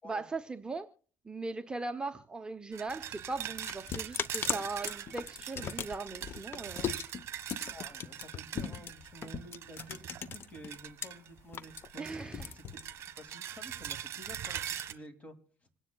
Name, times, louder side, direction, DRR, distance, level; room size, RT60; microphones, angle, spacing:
voice 1, 0.0-0.9 1.2-6.9 12.0-12.5, right 3 dB, 15° right, 0.7 m, -39 dB
sound 1, 2.7-11.3 11.6-14.9, right 10 dB, 50° right, 1.4 m, -42 dB
sound 2, 2.9-11.1 11.4-13.3, left 7 dB, 40° left, 0.8 m, -38 dB
voice 2, 7.7-12.9 13.2-15.4, equal, 25° left, 2.3 m, -51 dB
26.5 x 9.8 x 2.2 m
cardioid pair, 110°, 6 cm